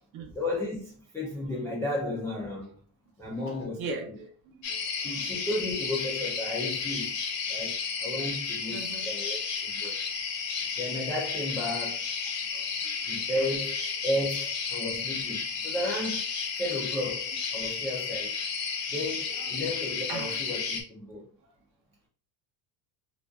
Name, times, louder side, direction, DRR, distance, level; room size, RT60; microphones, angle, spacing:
voice 1, 0.3-2.7 3.2-3.8 4.9-7.2 7.5-9.9 10.8-12.1 13.1-16.3 16.6-18.4 18.9-21.2, left 1 dB, 5° left, 0.3 m, -33 dB
voice 2, 3.2-5.2 8.7-9.1 12.5-12.9 19.3-19.5 20.1-20.4, right 3 dB, 50° right, 0.8 m, -40 dB
sound 1, 4.6-20.8, left 5 dB, 65° left, 0.8 m, -32 dB
2.5 x 2.3 x 2.3 m
cardioid pair, 125°, 45 cm